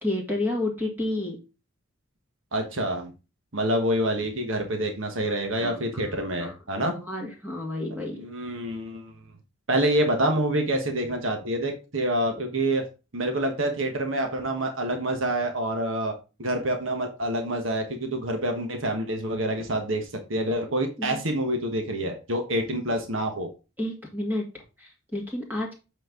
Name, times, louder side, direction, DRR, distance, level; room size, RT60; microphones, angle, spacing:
voice 1, 0.0-1.4 5.6-6.5 6.8-8.2 21.0-21.2 23.8-25.7, left 1 dB, 10° right, 0 dB, 2.0 m, -31 dB
voice 2, 2.5-3.1 3.5-6.9 8.1-9.1 9.7-12.8 13.1-16.1 16.4-23.5, right 1 dB, 75° right, 4 dB, 1.4 m, -27 dB
8.1 x 4.5 x 3.8 m, 0.30 s
head